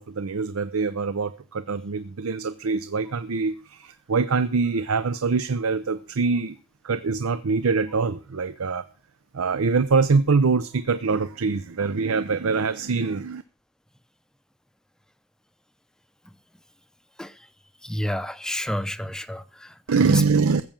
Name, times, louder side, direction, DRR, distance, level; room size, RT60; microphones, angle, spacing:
voice 1, 0.0-6.6 6.8-8.8 9.3-13.4 19.9-20.6, right 4 dB, 85° right, 0.6 m, -24 dB
voice 2, 17.8-19.8 20.1-20.2, left 1 dB, 5° left, 0.6 m, -30 dB
14.0 x 7.5 x 7.3 m
head